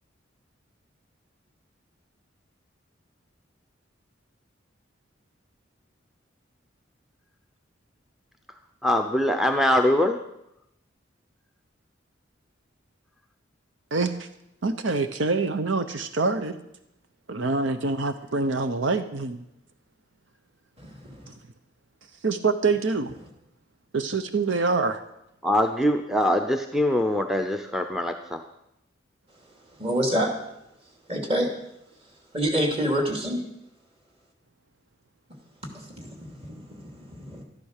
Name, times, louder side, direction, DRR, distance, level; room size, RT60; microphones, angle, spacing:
voice 1, 8.8-10.2 25.4-28.4, left 1 dB, ahead, 6 dB, 0.6 m, -23 dB
voice 2, 13.9-14.3 14.6-16.6 17.3-19.4 22.2-23.1 23.9-25.0, right 3 dB, 75° right, 10 dB, 0.8 m, -25 dB
voice 3, 20.8-21.3 29.7-30.3 31.1-31.5 32.3-33.4 35.7-37.4, equal, 30° right, 2 dB, 2.8 m, -27 dB
13.0 x 11.5 x 6.6 m, 0.83 s
head